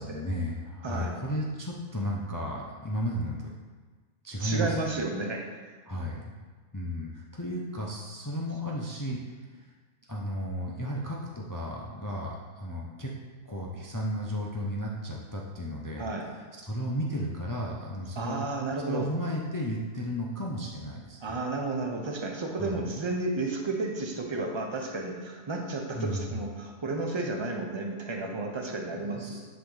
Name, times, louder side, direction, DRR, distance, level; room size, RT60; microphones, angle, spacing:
voice 1, 0.0-3.5 4.2-4.8 5.8-6.3 6.7-9.7 10.1-13.1 13.4-18.4 18.8-21.4 22.6-22.8 25.9-26.3 28.9-29.4, equal, 30° left, -2 dB, 0.3 m, -34 dB
voice 2, 0.8-1.2 4.4-5.5 16.0-16.3 18.2-19.1 21.2-29.4, right 2 dB, 35° right, 2 dB, 0.5 m, -32 dB
9.7 x 3.6 x 3.8 m, 1.4 s
omnidirectional pair, 1.4 m